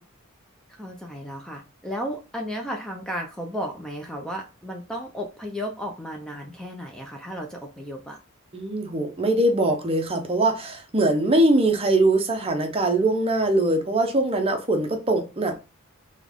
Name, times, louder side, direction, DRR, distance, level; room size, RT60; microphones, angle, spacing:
voice 1, 0.7-8.2, equal, 5° left, 0.6 m, -34 dB
voice 2, 8.5-15.6, right 2 dB, 25° right, 0.8 m, -22 dB
4.0 x 3.6 x 3.6 m
head